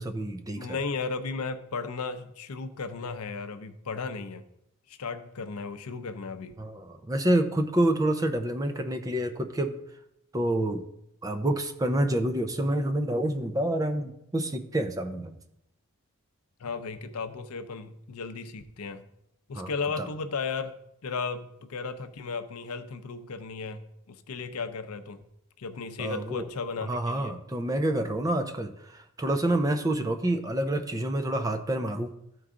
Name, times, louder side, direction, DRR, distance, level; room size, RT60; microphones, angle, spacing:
voice 1, 0.0-0.7 6.6-9.8 10.3-10.8 11.2-15.4 19.5-19.7 20.0-20.1 26.0-26.5 26.8-32.1, right 1 dB, 15° right, 7 dB, 0.5 m, -28 dB
voice 2, 0.6-4.4 4.9-6.6 16.6-19.0 19.5-20.8 21.0-25.2 25.6-27.4, left 4 dB, 80° left, 10 dB, 0.6 m, -35 dB
13.5 x 4.6 x 3.7 m, 0.81 s
head